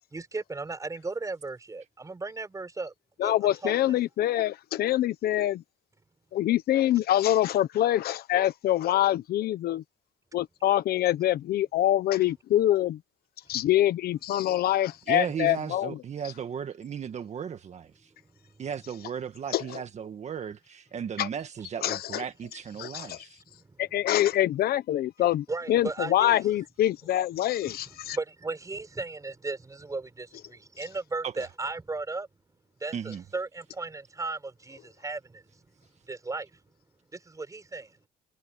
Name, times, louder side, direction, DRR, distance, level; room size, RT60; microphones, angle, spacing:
voice 1, 0.1-2.9 3.2-4.0 23.5-23.8 25.2-26.4 27.7-32.3 32.8-35.6 36.1-36.6 37.1-38.0, right 3 dB, 20° right, 4.6 m, -36 dB
voice 2, 3.2-5.6 6.3-9.8 10.3-13.0 13.5-16.0 19.5-19.8 21.2-21.3 21.8-22.2 22.8-23.2 23.8-28.2, left 13 dB, 65° left, 1.1 m, -25 dB
voice 3, 15.1-18.1 18.6-23.4 31.2-31.5 32.9-33.2, right 7 dB, 40° right, 1.6 m, -36 dB
cardioid pair, 110°, 17 cm